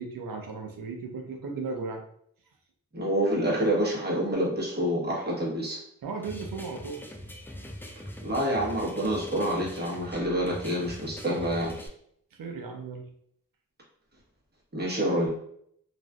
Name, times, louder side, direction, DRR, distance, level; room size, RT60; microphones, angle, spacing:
voice 1, 0.0-2.0 6.0-7.0 12.3-13.1, right 4 dB, 80° right, 3 dB, 0.5 m, -36 dB
voice 2, 2.9-5.8 8.2-11.9 14.7-15.3, equal, 30° right, -4 dB, 1.0 m, -27 dB
sound 1, 6.2-11.9, equal, 5° left, 0.3 m, -42 dB
2.4 x 2.3 x 2.2 m, 0.69 s
cardioid pair, 40°, 33 cm